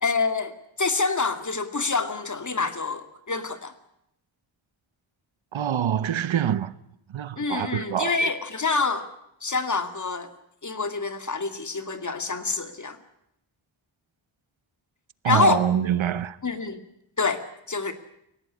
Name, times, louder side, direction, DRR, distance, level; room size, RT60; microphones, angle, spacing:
voice 1, 0.0-3.7 7.4-9.1 9.4-10.3 10.6-13.0 15.2-15.7 16.4-16.8 17.2-17.4 17.7-17.9, left 4 dB, 40° left, 2.4 m, -26 dB
voice 2, 5.5-6.7 7.1-8.3 15.2-16.4, right 9 dB, 80° right, 1.1 m, -25 dB
28.5 x 17.0 x 9.8 m
wide cardioid pair, 130°, 47 cm